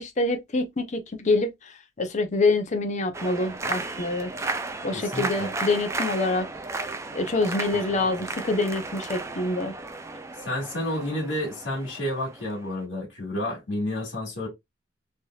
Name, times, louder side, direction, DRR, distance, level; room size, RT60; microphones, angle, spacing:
voice 1, 0.0-4.3 4.8-6.5 7.1-9.7, left 2 dB, 40° left, 0.6 m, -26 dB
sound 1, 3.1-12.8, right 3 dB, 15° right, 0.3 m, -34 dB
voice 2, 4.9-5.5 7.9-8.0 10.5-14.5, left 1 dB, 75° left, 1.6 m, -30 dB
3.3 x 2.7 x 2.3 m
head